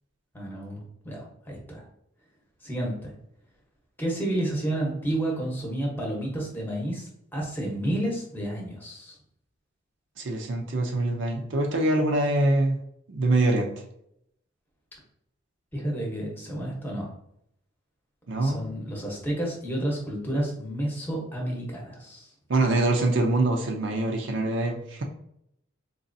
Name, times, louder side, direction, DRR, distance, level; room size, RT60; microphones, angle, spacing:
voice 1, 0.3-1.8 2.6-3.1 4.0-9.2 15.7-17.1 18.4-22.3, right 1 dB, 10° left, -2 dB, 0.9 m, -31 dB
voice 2, 10.2-12.8 13.1-13.7 18.3-18.6 22.5-25.0, right 2 dB, 60° right, 2 dB, 0.5 m, -24 dB
4.0 x 3.0 x 2.6 m, 0.74 s
head